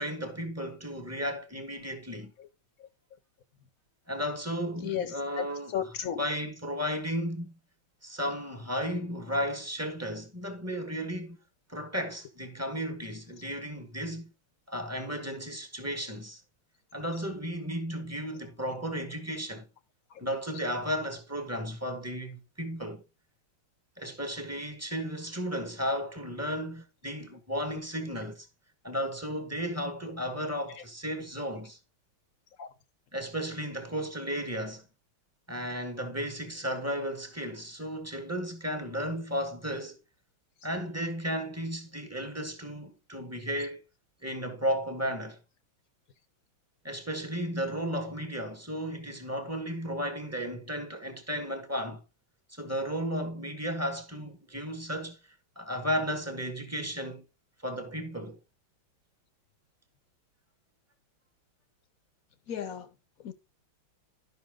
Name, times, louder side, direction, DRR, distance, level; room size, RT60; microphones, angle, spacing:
voice 1, 0.0-2.3 4.1-5.7 6.2-7.6 8.0-11.4 11.7-14.3 14.7-16.4 16.9-19.7 20.2-23.0 24.0-28.5 28.8-31.8 33.1-34.8 35.5-40.0 40.6-43.8 44.2-45.4 46.8-52.0 52.6-55.2 55.6-57.3 57.6-58.4, equal, 10° right, 0.9 m, -34 dB
voice 2, 4.8-6.2 20.1-20.3 30.8-30.9 32.6-32.7 62.5-62.9 63.2-63.3, left 8 dB, 55° left, 1.1 m, -34 dB
11.5 x 5.9 x 3.6 m
omnidirectional pair, 2.3 m